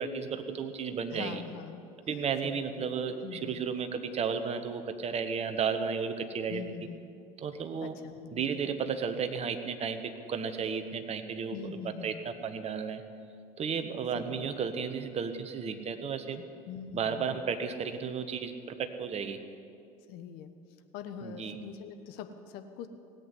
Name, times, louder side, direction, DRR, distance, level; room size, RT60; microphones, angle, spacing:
voice 1, 0.0-1.4 2.1-6.6 7.4-8.0 8.3-10.0 10.3-13.0 13.6-16.4 16.9-19.4 21.2-21.6, right 6 dB, 35° right, 8 dB, 1.3 m, -33 dB
voice 2, 1.1-1.8 2.4-2.8 3.2-3.7 6.5-7.0 7.8-8.6 11.5-12.3 14.1-14.5 16.7-17.3 20.1-20.5 20.9-22.9, left 7 dB, 55° left, 9 dB, 1.1 m, -43 dB
17.5 x 8.5 x 9.6 m, 2.5 s
hypercardioid pair, 80°, 19 cm